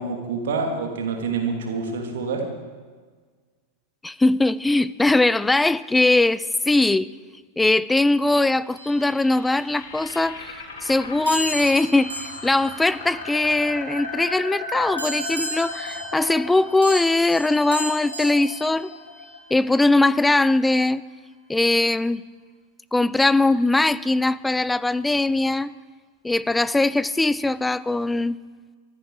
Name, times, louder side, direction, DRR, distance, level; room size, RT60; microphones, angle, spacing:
voice 1, 0.0-2.5, right 4 dB, 60° right, 2.6 m, -27 dB
voice 2, 4.0-7.1 7.6-18.9 19.5-21.0 21.5-22.2 22.9-25.7 26.2-28.4, left 2 dB, 5° left, 0.4 m, -21 dB
sound 1, 8.6-20.6, left 3 dB, 60° left, 4.3 m, -37 dB
sound 2, 8.8-10.0 11.3-14.0 15.0-19.5, right 1 dB, 75° right, 4.6 m, -35 dB
24.5 x 11.0 x 4.8 m
figure-of-eight pair, 90°, 0 cm